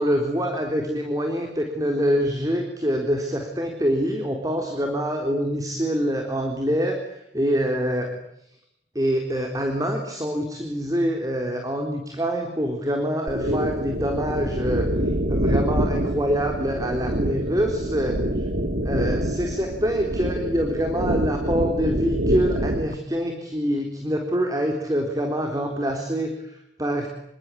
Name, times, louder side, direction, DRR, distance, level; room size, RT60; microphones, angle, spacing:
voice 1, 0.0-8.2 9.0-14.9 15.3-18.5 18.8-27.1, equal, 20° right, 3 dB, 3.8 m, -25 dB
sound 1, 13.3-22.9, equal, 60° right, 2.1 m, -26 dB
27.0 x 24.5 x 8.5 m, 0.79 s
head